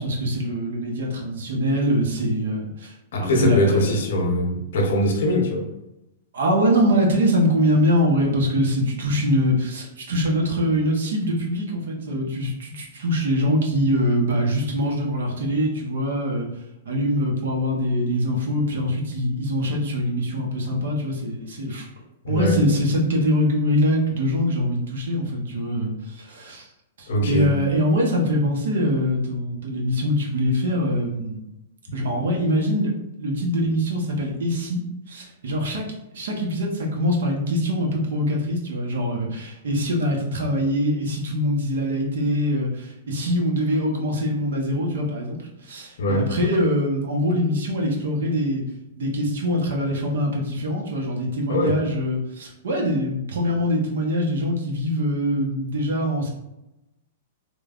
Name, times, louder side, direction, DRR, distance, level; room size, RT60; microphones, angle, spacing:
voice 1, 0.0-3.9 6.3-16.5 16.8-21.9 22.3-26.7 27.0-31.4 31.9-32.9 33.2-34.8 35.1-35.8 36.1-48.6 49.0-56.3, equal, 80° right, 0 dB, 0.8 m, -23 dB
voice 2, 3.1-5.7 22.2-22.6 27.1-27.5 46.0-46.2 51.5-51.7, left 1 dB, 75° left, 1 dB, 0.8 m, -21 dB
3.1 x 2.2 x 2.4 m, 0.92 s
hypercardioid pair, 145°, 0 cm